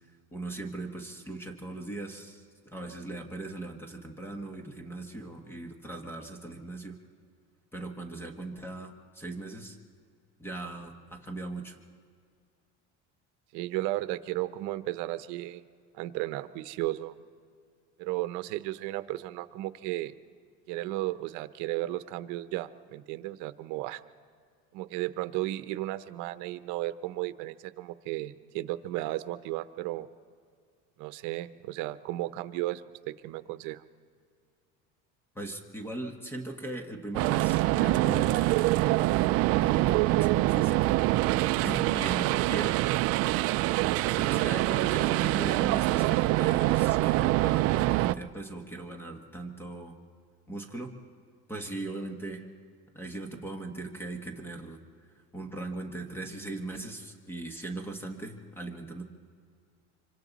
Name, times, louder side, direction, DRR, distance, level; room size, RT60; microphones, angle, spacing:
voice 1, 0.3-7.0 7.7-9.8 10.4-11.8 35.3-38.7 39.5-41.0 41.4-42.8 44.2-50.0 50.5-50.9 51.5-52.5 52.9-54.8 55.3-59.0, right 2 dB, 5° left, 4 dB, 1.5 m, -39 dB
voice 2, 13.5-15.6 15.9-17.2 18.0-20.1 20.7-24.0 24.7-30.1 31.0-33.8, right 16 dB, 70° right, 13 dB, 0.9 m, -34 dB
sound 1, 37.1-48.1, right 18 dB, 50° right, 0.4 m, -25 dB
25.5 x 25.0 x 4.1 m, 2.1 s
cardioid pair, 150°, 31 cm